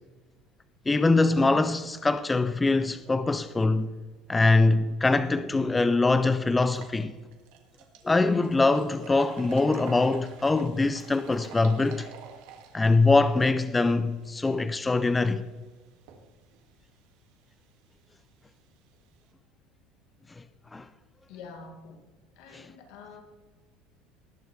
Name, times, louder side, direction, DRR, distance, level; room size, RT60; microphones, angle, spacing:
voice 1, 0.9-3.9 4.3-7.1 8.0-12.1 12.7-15.4 20.7-20.9 22.5-22.6, left 3 dB, 10° left, 0.3 m, -23 dB
sound 1, 5.3-5.4 5.8-5.9 6.5-19.3, right 7 dB, 75° right, 2.1 m, -51 dB
voice 2, 21.3-22.1 22.4-23.2, left 4 dB, 70° left, 2.3 m, -46 dB
19.5 x 8.0 x 3.3 m
cardioid pair, 160°, 0 cm